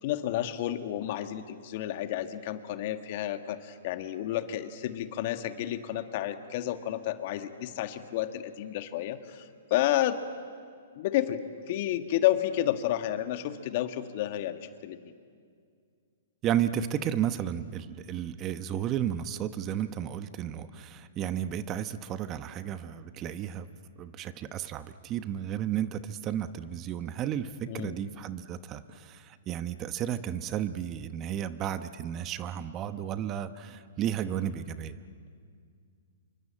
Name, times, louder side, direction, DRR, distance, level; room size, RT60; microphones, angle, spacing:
voice 1, 0.0-10.2 10.9-11.4 11.7-15.0 27.7-28.0, left 13 dB, 50° left, 9 dB, 1.6 m, -31 dB
voice 2, 16.4-23.7 24.0-34.9, right 10 dB, 30° right, 12 dB, 1.0 m, -33 dB
27.0 x 24.0 x 8.7 m, 2.2 s
hypercardioid pair, 135°, 0 cm